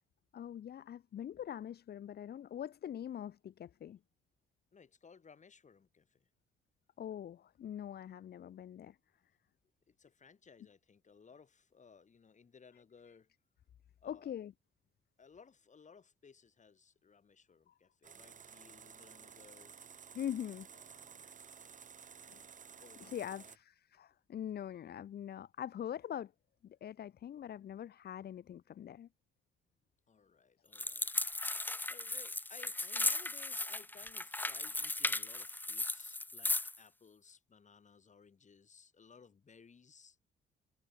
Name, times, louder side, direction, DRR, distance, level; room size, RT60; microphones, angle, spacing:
voice 1, 0.3-4.0 7.0-9.0 14.0-14.5 17.7-17.8 20.1-20.7 21.2-21.3 22.3-22.4 23.0-26.3 26.6-29.1, left 10 dB, 55° left, 0.8 m, -43 dB
voice 2, 4.7-6.3 9.9-13.3 14.0-14.3 15.2-19.7 20.7-21.3 22.8-23.6 30.1-31.1 31.9-40.2, left 5 dB, 40° left, 2.7 m, -60 dB
sound 1, 18.0-23.6, right 7 dB, 40° right, 1.1 m, -54 dB
sound 2, 30.7-36.8, left 2 dB, 10° left, 0.6 m, -36 dB
cardioid pair, 90°, 20 cm